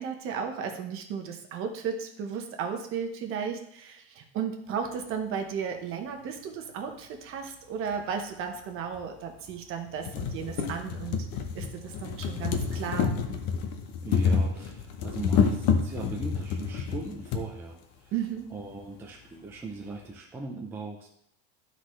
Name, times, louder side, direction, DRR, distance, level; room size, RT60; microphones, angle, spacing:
voice 1, 0.0-11.3 11.5-13.1 18.1-18.5, right 7 dB, 40° right, 4 dB, 1.0 m, -34 dB
sound 1, 7.9-8.0 8.9-9.0 9.5-9.6 9.9-17.4 18.4-18.5 18.7-18.8, left 6 dB, 50° left, 0.9 m, -28 dB
voice 2, 14.0-18.1 18.5-21.1, right 3 dB, 5° right, -1 dB, 0.4 m, -39 dB
12.0 x 4.1 x 3.2 m, 0.73 s
supercardioid pair, 155°, 34 cm